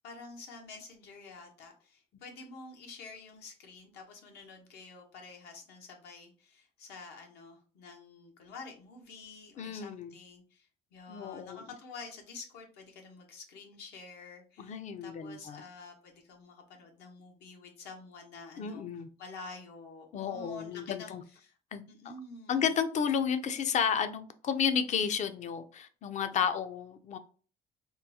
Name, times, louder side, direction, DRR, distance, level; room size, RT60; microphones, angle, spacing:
voice 1, 0.0-18.9 19.2-21.6 21.9-22.6, left 4 dB, 80° left, 0.9 m, -49 dB
voice 2, 9.6-10.1 11.1-11.6 14.6-15.6 18.6-19.1 20.1-21.2 21.7-22.1 22.5-27.2, left 7 dB, 45° left, 0.4 m, -32 dB
3.6 x 2.3 x 2.7 m
cardioid pair, 110°, 17 cm